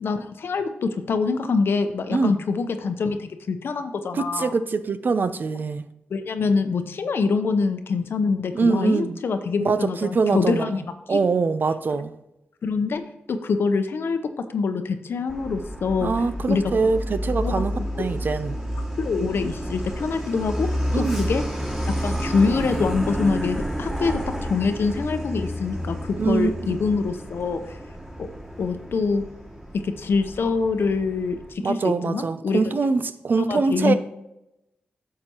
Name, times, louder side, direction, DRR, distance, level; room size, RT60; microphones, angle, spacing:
voice 1, 0.0-4.5 6.1-11.2 12.6-13.0 13.3-16.1 16.5-16.7 17.4-17.6 17.9-18.1 19.0-20.7 21.0-21.4 21.9-27.6 28.2-28.3 28.6-29.2 29.7-31.4 31.6-32.6 33.4-33.9, left 4 dB, 70° left, 0.8 m, -25 dB
voice 2, 4.1-5.9 8.5-9.2 9.6-10.7 11.1-12.1 16.0-17.7 18.0-18.6 20.9-21.3 26.2-26.8 31.6-33.9, right 4 dB, 55° right, 0.6 m, -23 dB
Truck, 15.3-31.5, equal, 10° right, 2.2 m, -30 dB
10.0 x 6.7 x 3.0 m
cardioid pair, 65°, 4 cm